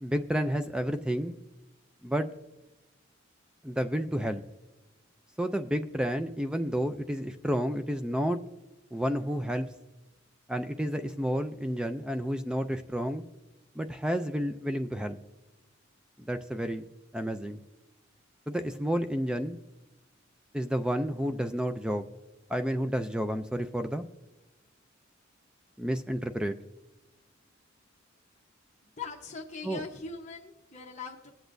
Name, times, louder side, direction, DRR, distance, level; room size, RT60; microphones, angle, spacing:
voice 1, 0.0-1.4 2.0-2.3 3.6-4.4 5.4-8.4 8.9-9.7 10.5-13.2 13.8-15.2 16.3-16.8 17.1-17.6 18.5-19.6 20.5-22.0 22.5-24.1 25.8-26.5 29.6-29.8, equal, 5° right, 8 dB, 0.3 m, -30 dB
voice 2, 28.8-31.3, left 4 dB, 35° left, 0 dB, 0.9 m, -41 dB
19.5 x 8.1 x 2.6 m, 1.1 s
head